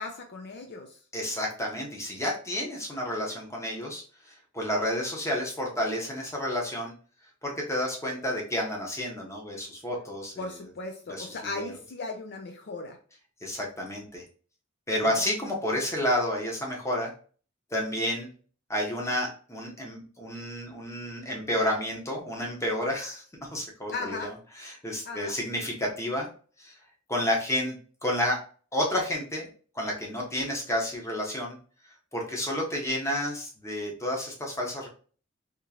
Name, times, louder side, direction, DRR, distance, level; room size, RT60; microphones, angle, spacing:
voice 1, 0.0-1.0 10.4-13.0 15.0-15.3 23.9-24.3 25.1-25.4, left 3 dB, 50° left, 4 dB, 0.4 m, -37 dB
voice 2, 1.1-6.9 7.4-10.4 11.1-11.7 13.4-14.2 14.9-17.1 17.7-18.3 18.7-26.3 26.6-26.7 27.1-27.8 28.0-28.4 28.7-29.5 29.7-31.6 32.1-34.9, left 1 dB, 15° left, -1 dB, 0.9 m, -30 dB
3.6 x 2.9 x 2.9 m, 0.42 s
head